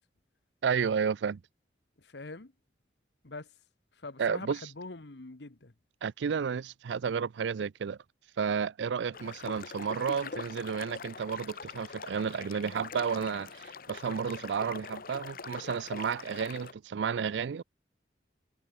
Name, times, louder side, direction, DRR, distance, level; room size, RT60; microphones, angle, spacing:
voice 1, 0.6-1.4 4.2-4.6 6.0-8.0 8.4-17.6, right 6 dB, 80° right, 0.4 m, -32 dB
voice 2, 2.0-2.5 3.2-3.5 4.0-5.7, left 3 dB, 70° left, 1.3 m, -43 dB
sound 1, 9.1-16.7, left 5 dB, 50° left, 1.0 m, -43 dB
head